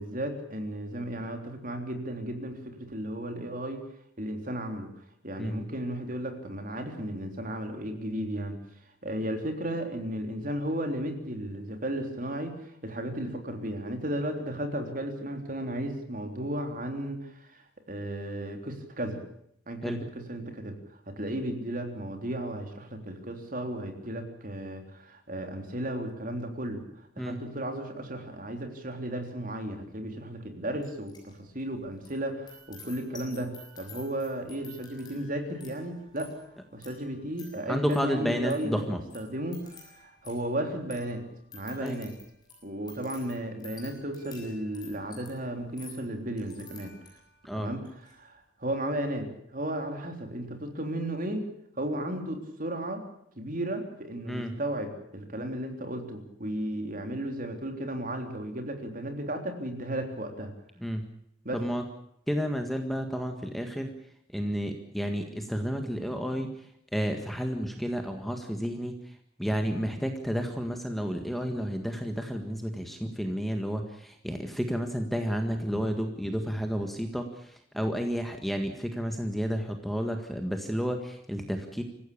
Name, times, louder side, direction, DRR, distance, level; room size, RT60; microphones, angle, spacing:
voice 1, 0.0-3.8 4.2-4.9 5.2-8.6 9.0-19.2 19.7-20.8 21.1-26.8 27.2-36.3 36.7-38.9 39.1-41.2 41.5-42.1 42.6-46.9 47.6-47.8 48.1-51.4 51.8-53.0 53.4-60.5 61.5-61.6, right 1 dB, 45° right, 5 dB, 3.6 m, -34 dB
sound 1, 30.8-31.3 31.6-47.4 47.8-48.1, left 3 dB, 20° left, 7.6 m, -52 dB
voice 2, 37.7-39.0 41.8-42.0 47.4-47.7 54.3-54.6 60.8-61.0 61.5-61.8 62.3-63.9 64.3-69.1 69.4-81.8, equal, ahead, 4 dB, 1.7 m, -31 dB
26.0 x 15.5 x 8.6 m, 0.71 s
head